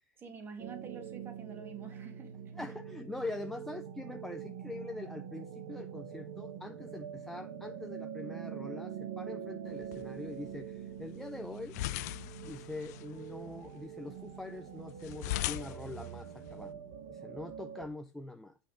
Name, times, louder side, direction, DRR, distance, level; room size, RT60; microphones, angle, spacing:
voice 1, 0.2-2.5, right 5 dB, 25° right, 2.0 m, -48 dB
sound 1, 0.6-17.9, right 8 dB, 70° right, 1.2 m, -44 dB
voice 2, 2.5-12.0 12.4-16.8 17.1-18.6, left 2 dB, 5° left, 0.5 m, -43 dB
sound 2, 9.7-16.7, left 17 dB, 75° left, 0.5 m, -42 dB
8.4 x 5.7 x 5.0 m
supercardioid pair, 160°, 9 cm